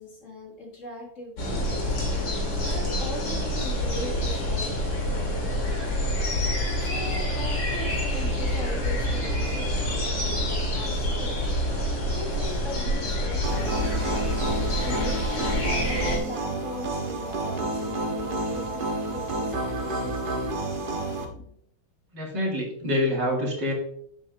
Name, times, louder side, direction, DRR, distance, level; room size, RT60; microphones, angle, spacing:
voice 1, 0.0-2.0 2.7-5.9 6.8-11.3 12.2-13.8 14.7-15.5 15.9-20.3 20.7-21.6, left 1 dB, 45° left, 0 dB, 1.8 m, -39 dB
sound 1, 1.4-16.2, left 1 dB, 90° left, 2.9 m, -27 dB
sound 2, 13.4-21.3, right 2 dB, 35° right, 0.9 m, -30 dB
voice 2, 22.1-23.7, left 1 dB, 70° right, -2 dB, 2.8 m, -26 dB
7.7 x 7.7 x 2.5 m, 0.66 s
omnidirectional pair, 2.0 m